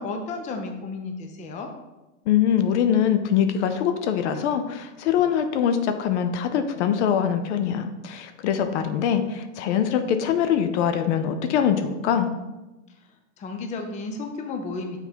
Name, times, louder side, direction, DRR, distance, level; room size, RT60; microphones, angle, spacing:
voice 1, 0.0-1.7 13.4-15.0, left 3 dB, 20° left, 4 dB, 0.6 m, -32 dB
voice 2, 2.3-12.3, left 8 dB, 65° left, 9 dB, 0.7 m, -23 dB
5.7 x 3.9 x 4.5 m, 1.1 s
supercardioid pair, 135°, 38 cm